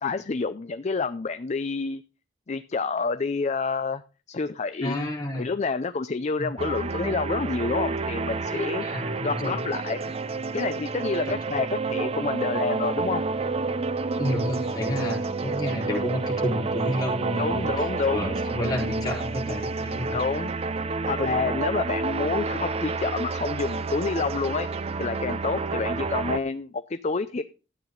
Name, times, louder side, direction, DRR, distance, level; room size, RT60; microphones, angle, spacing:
voice 1, 0.0-2.0 2.5-4.0 4.3-5.0 5.3-8.9 9.2-10.1 10.5-13.2 17.4-18.3 20.1-20.5 21.0-24.7 25.0-27.4, left 4 dB, 40° left, 11 dB, 0.5 m, -28 dB
voice 2, 4.8-5.5 6.4-6.5 8.8-9.6 11.3-11.4 14.2-20.2, equal, 20° left, -3 dB, 4.2 m, -30 dB
sound 1, 6.6-26.4, right 3 dB, 35° right, 0.5 m, -29 dB
13.0 x 9.0 x 3.9 m, 0.33 s
head